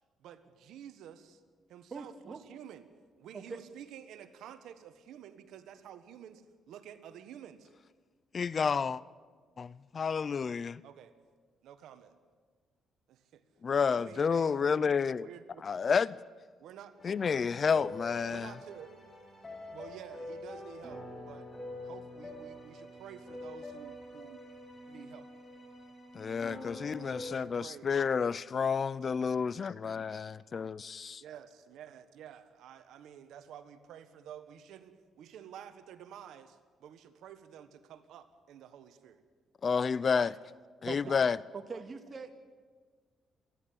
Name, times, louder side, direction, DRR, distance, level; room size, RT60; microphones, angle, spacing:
voice 1, 0.2-1.4 1.7-2.8 3.2-7.7 10.8-11.1 11.6-12.1 13.1-13.4 13.9-14.8 15.2-15.7 16.6-16.9 18.3-19.0 19.7-21.5 21.8-24.4 24.9-25.3 26.9-27.9 29.0-29.7 30.1-30.3 31.2-39.2 39.8-40.4 41.0-41.2 41.7-41.8, right 9 dB, 80° right, 1.3 m, -50 dB
voice 2, 1.9-2.4 3.3-3.6 40.9-41.1 41.5-42.4, right 4 dB, 35° right, 2.0 m, -42 dB
voice 3, 8.3-9.0 9.6-10.8 13.6-15.3 15.6-16.2 17.0-18.5 26.1-31.2 39.6-40.3 40.8-41.4, left 6 dB, 45° left, 0.5 m, -30 dB
sound 1, 17.0-27.3, left 1 dB, 25° left, 7.7 m, -46 dB
27.5 x 11.0 x 8.7 m
cardioid pair, 90°, 0 cm